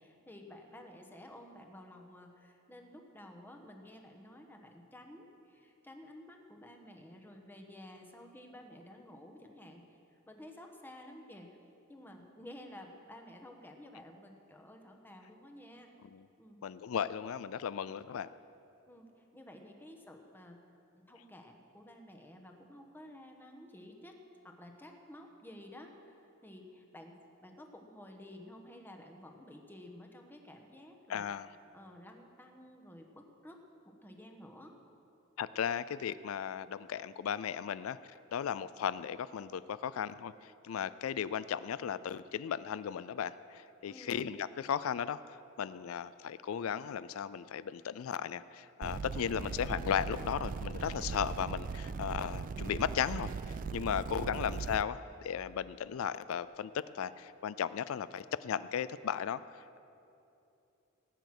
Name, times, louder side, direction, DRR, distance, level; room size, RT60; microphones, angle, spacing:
voice 1, 0.0-11.5 11.9-15.9 16.4-16.6 18.9-20.6 20.9-24.2 24.4-31.3 31.7-34.8 43.9-44.4, left 1 dB, 10° left, 3 dB, 1.2 m, -52 dB
voice 2, 16.6-18.3 31.1-31.5 35.4-38.0 38.3-53.3 53.7-59.4, left 8 dB, 75° left, 16 dB, 0.4 m, -36 dB
sound 1, 48.8-54.8, right 5 dB, 40° right, 0.3 m, -39 dB
18.5 x 9.1 x 6.1 m, 2.8 s
head